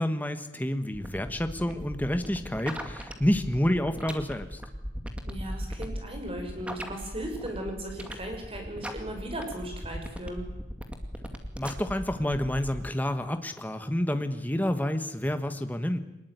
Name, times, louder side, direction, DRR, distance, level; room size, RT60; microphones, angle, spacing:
voice 1, 0.0-4.6 11.6-16.0, left 1 dB, 10° left, 8 dB, 1.3 m, -29 dB
sound 1, 0.9-12.9, equal, 5° right, 2.2 m, -38 dB
voice 2, 5.3-10.4, right 1 dB, 30° right, 3 dB, 6.1 m, -37 dB
23.5 x 20.5 x 9.4 m, 0.93 s
head